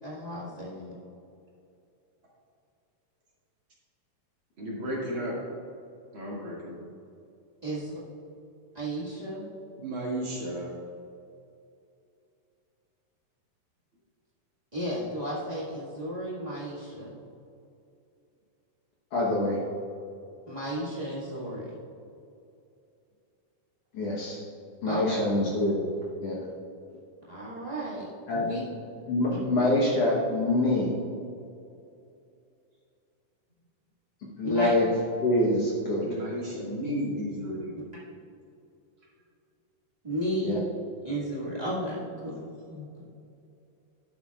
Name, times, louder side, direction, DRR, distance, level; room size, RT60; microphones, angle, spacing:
voice 1, 0.0-0.9 7.6-7.9 8.7-9.5 14.7-17.2 20.5-21.7 24.8-25.2 27.3-28.6 29.3-29.4 34.4-34.7 40.0-40.6 41.0-42.4 42.7-43.0, equal, 65° right, -9 dB, 0.4 m, -34 dB
voice 2, 4.6-5.4 6.1-6.8 9.8-10.7 36.0-37.7, equal, 40° right, -6 dB, 2.4 m, -33 dB
voice 3, 19.1-19.6 23.9-24.4 24.8-25.9 26.2-26.4 28.3-28.5 29.0-30.9 34.4-34.9 35.2-36.1 40.4-40.6, left 1 dB, 60° left, -5 dB, 1.7 m, -25 dB
12.5 x 9.7 x 2.4 m, 2.6 s
omnidirectional pair, 4.0 m